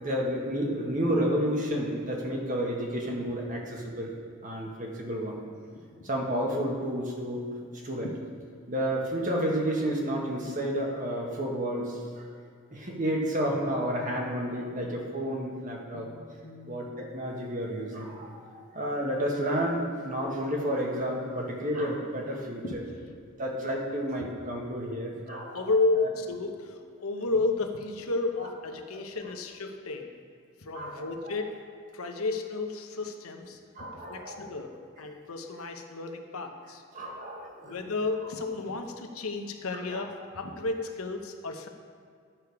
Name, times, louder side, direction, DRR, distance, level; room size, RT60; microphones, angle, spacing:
voice 1, 0.0-4.1 4.4-5.4 6.0-7.4 7.8-8.1 8.7-12.3 12.7-16.1 16.7-22.6 23.4-25.6 28.9-29.0 30.7-31.4 33.7-34.5 36.9-37.8 39.9-40.0, equal, 35° right, -1 dB, 1.5 m, -31 dB
voice 2, 15.9-16.7 22.6-23.2 25.1-25.2 25.5-30.1 30.6-31.5 31.9-36.8 37.6-41.7, left 3 dB, 90° left, 4 dB, 1.0 m, -32 dB
11.0 x 6.9 x 4.8 m, 2.2 s
head